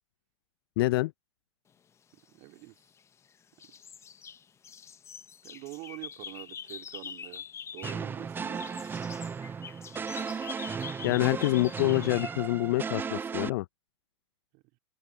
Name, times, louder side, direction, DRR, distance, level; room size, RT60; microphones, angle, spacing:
voice 1, 0.8-1.1 11.0-13.7, left 19 dB, 55° left, 0.8 m, -26 dB
voice 2, 2.3-2.8 5.4-7.4 7.7-9.0 14.5-14.6, right 26 dB, 45° right, 2.7 m, -45 dB
sound 1, 2.5-3.3 3.6-8.1 8.4-12.4, left 7 dB, 20° left, 1.0 m, -45 dB
sound 2, 7.8-13.5, right 6 dB, 15° right, 0.7 m, -35 dB
open air
hypercardioid pair, 110°, 15 cm